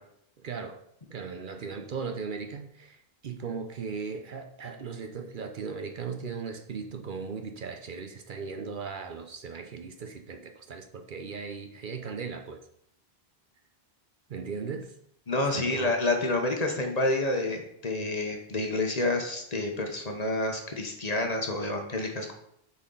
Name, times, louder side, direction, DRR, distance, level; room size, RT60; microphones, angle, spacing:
voice 1, 0.4-0.8 1.1-12.6 14.3-14.9 15.5-16.0, right 5 dB, 60° right, 5 dB, 0.7 m, -37 dB
voice 2, 15.3-22.4, left 2 dB, 40° left, 3 dB, 1.0 m, -29 dB
9.3 x 4.2 x 3.8 m, 0.74 s
omnidirectional pair, 1.0 m